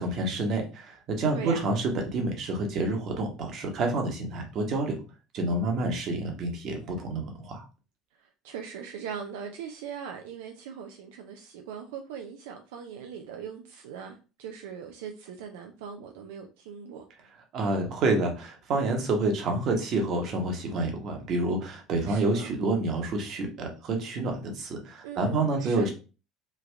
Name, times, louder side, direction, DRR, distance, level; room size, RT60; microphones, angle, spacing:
voice 1, 0.0-5.0 5.3-7.6 17.5-25.9, right 2 dB, 55° right, 1.1 m, -28 dB
voice 2, 1.3-1.7 8.2-17.0 22.1-22.5 25.0-25.9, right 7 dB, 90° right, 0.4 m, -40 dB
3.3 x 2.3 x 3.3 m
supercardioid pair, 100°, 0 cm